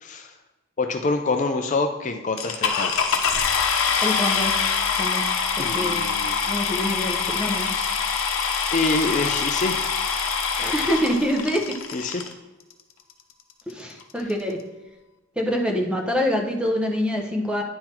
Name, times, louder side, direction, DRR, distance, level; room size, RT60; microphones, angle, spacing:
voice 1, 0.0-0.3 0.8-2.9 5.6-6.4 7.7-7.9 8.7-10.0 11.9-12.2, left 3 dB, 35° left, 5 dB, 0.5 m, -26 dB
sound 1, 2.4-12.3 13.1-13.2 13.7-13.8 14.0-14.3, left 5 dB, 80° left, 0.9 m, -24 dB
voice 2, 4.0-4.5 5.0-5.2 5.6-6.0 6.5-7.7 10.6-11.8 13.7-14.6 15.4-17.6, equal, 5° right, 1 dB, 0.8 m, -25 dB
10.0 x 4.0 x 4.4 m, 1.1 s
head